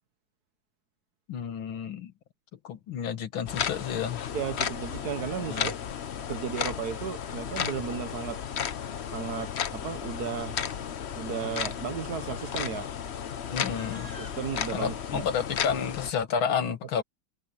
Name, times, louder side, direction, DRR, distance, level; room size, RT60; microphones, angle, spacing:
voice 1, 1.3-2.1 2.6-4.2 5.4-5.7 13.5-14.1 14.7-17.0, left 7 dB, 85° left, 2.3 m, -30 dB
sound 1, 3.5-16.1, left 8 dB, 50° left, 0.8 m, -34 dB
voice 2, 4.3-5.8 6.3-8.4 9.1-10.6 11.2-12.9 14.2-15.2, right 7 dB, 55° right, 1.5 m, -34 dB
Livestock farm animals working animals, 13.1-14.5, equal, 15° right, 3.4 m, -55 dB
omnidirectional pair, 2.2 m